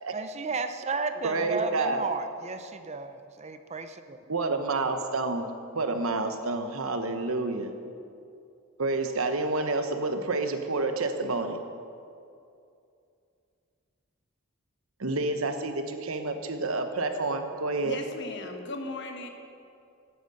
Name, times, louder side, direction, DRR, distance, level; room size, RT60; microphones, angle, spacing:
voice 1, 0.1-4.2, right 4 dB, 30° right, 9 dB, 0.6 m, -33 dB
voice 2, 1.2-2.0 4.3-5.5 5.7-7.7 8.8-11.6 15.0-18.0, right 3 dB, 85° right, 7 dB, 1.1 m, -29 dB
voice 3, 17.8-19.3, left 2 dB, 55° left, 5 dB, 1.2 m, -37 dB
9.6 x 9.0 x 7.7 m, 2.5 s
head